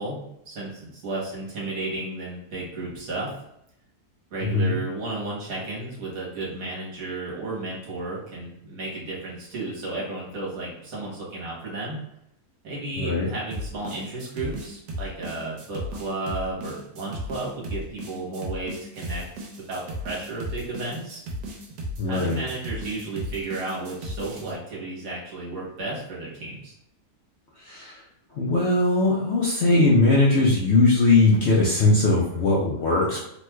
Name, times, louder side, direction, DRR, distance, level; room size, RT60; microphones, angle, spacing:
voice 1, 0.0-3.3 4.3-12.0 12.6-19.2 19.6-21.2 22.0-26.7, right 2 dB, 60° right, -5 dB, 1.4 m, -33 dB
voice 2, 4.4-4.8 13.0-13.3 22.0-22.4 27.6-28.0 28.4-33.2, left 2 dB, 65° left, -5 dB, 0.6 m, -20 dB
sound 1, 13.5-24.5, equal, 80° right, 1.3 m, -35 dB
3.2 x 3.0 x 2.2 m, 0.80 s
omnidirectional pair, 1.7 m